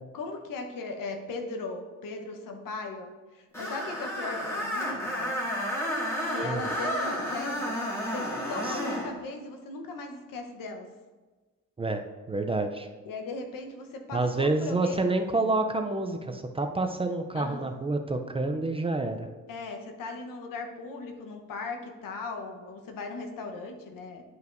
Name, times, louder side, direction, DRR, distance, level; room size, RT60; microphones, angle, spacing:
voice 1, 0.1-5.4 6.2-7.8 8.0-10.9 13.0-15.0 17.3-17.6 19.5-24.2, left 3 dB, 85° left, 5 dB, 1.0 m, -38 dB
Screech, 3.5-9.1, equal, 10° left, 2.0 m, -31 dB
voice 2, 11.8-12.9 14.1-19.3, right 2 dB, 20° right, 5 dB, 0.4 m, -28 dB
11.0 x 5.5 x 2.6 m, 1.3 s
cardioid pair, 120°, 33 cm